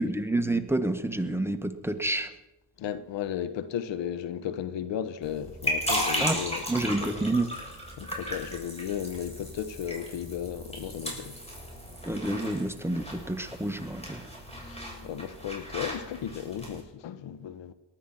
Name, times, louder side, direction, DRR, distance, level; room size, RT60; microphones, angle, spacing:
voice 1, 0.0-2.3 6.2-6.4 6.7-7.5 12.1-14.3, right 2 dB, 5° right, 1.6 m, -29 dB
voice 2, 2.8-6.6 7.0-7.1 8.0-11.4 14.6-14.8 15.0-17.7, left 9 dB, 70° left, 1.3 m, -35 dB
sound 1, 5.2-16.8, equal, 15° left, 7.4 m, -35 dB
19.0 x 12.5 x 5.9 m
supercardioid pair, 65°, 45 cm